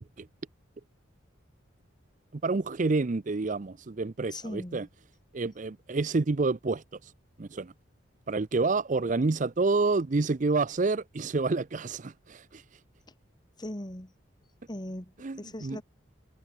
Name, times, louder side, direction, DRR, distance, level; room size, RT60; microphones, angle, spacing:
voice 1, 2.3-4.9 5.3-7.1 7.4-7.7 8.3-12.6 15.2-15.8, right 3 dB, 40° right, 0.5 m, -28 dB
voice 2, 4.3-4.9 13.6-14.1 14.7-15.8, left 1 dB, 20° left, 1.9 m, -39 dB
head